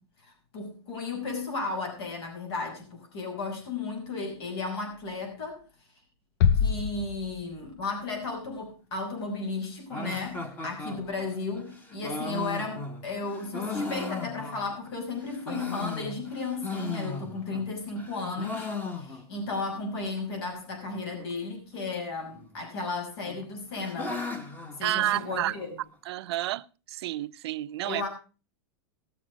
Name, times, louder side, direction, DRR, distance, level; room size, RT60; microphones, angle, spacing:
voice 1, 0.2-5.6 6.6-24.2 24.8-25.8 27.8-28.1, left 3 dB, 70° left, 5.8 m, -34 dB
sound 1, 6.4-8.0, left 7 dB, 50° left, 0.6 m, -26 dB
sound 2, 9.9-14.9 15.3-17.7 18.0-19.5 19.8-19.9 20.1-20.2 20.8-21.3 22.3-22.9 23.3-25.7, left 3 dB, 15° left, 1.2 m, -37 dB
voice 2, 24.8-25.5 26.1-28.0, right 15 dB, 75° right, 0.6 m, -30 dB
18.0 x 7.6 x 5.1 m
supercardioid pair, 155°, 14 cm